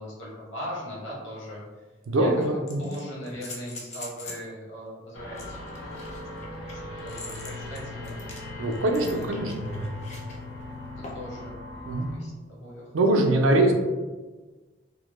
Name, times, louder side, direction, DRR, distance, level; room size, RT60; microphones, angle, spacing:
voice 1, 0.0-1.6 2.2-5.9 6.3-8.2 9.0-9.5 11.0-11.6 12.1-12.9 13.6-13.7, equal, 65° left, -5 dB, 0.9 m, -40 dB
sound 1, 1.4-1.5 2.4-4.5 5.3-10.4 11.0-11.4 13.0-13.1, left 2 dB, 35° left, 0.4 m, -43 dB
voice 2, 2.1-2.9 8.6-9.9 11.9-12.1 12.9-13.7, right 1 dB, 80° right, 3 dB, 0.4 m, -23 dB
sound 2, 5.1-12.2, left 2 dB, 90° left, 0.5 m, -39 dB
2.1 x 2.0 x 3.0 m, 1.3 s
head